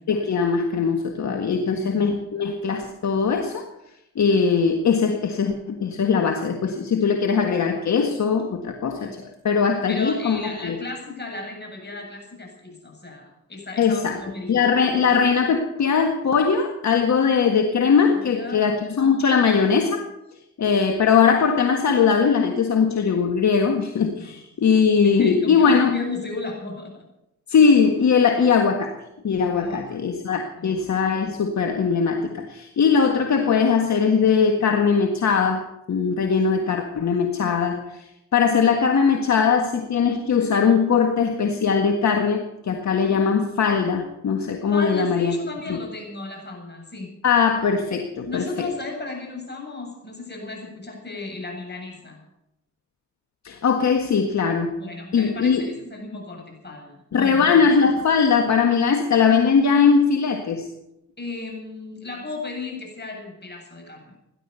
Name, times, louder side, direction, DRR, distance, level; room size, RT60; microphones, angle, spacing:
voice 1, 0.1-3.7 4.2-10.8 13.8-14.2 14.5-20.1 20.6-25.9 27.5-29.0 29.2-38.0 38.3-45.4 45.7-45.8 47.2-48.7 53.4-54.7 55.1-55.7 57.1-60.7, left 6 dB, 65° left, 4 dB, 1.7 m, -20 dB
voice 2, 1.2-2.2 9.0-9.2 9.9-14.6 18.1-18.6 24.1-24.4 25.0-27.0 29.5-30.0 30.6-30.8 43.0-43.3 44.7-47.1 48.2-52.2 54.8-57.7 59.3-59.5 61.2-64.1, left 3 dB, 35° left, 1 dB, 7.7 m, -35 dB
18.0 x 11.5 x 6.9 m, 0.88 s
cardioid pair, 70°, 30 cm